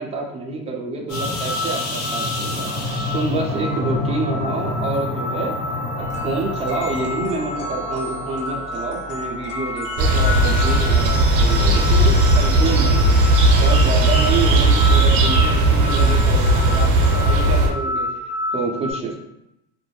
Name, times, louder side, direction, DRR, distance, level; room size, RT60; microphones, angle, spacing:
voice 1, 0.0-5.6 6.0-18.1 18.5-19.2, right 3 dB, 15° right, -1 dB, 0.4 m, -28 dB
sound 1, 1.1-18.9, left 2 dB, 70° left, 1.1 m, -28 dB
sound 2, 6.0-13.2, left 2 dB, 40° left, 1.0 m, -34 dB
sound 3, 10.0-17.7, right 2 dB, 50° right, 0.7 m, -16 dB
2.4 x 2.1 x 3.1 m, 0.85 s
supercardioid pair, 105°, 45 cm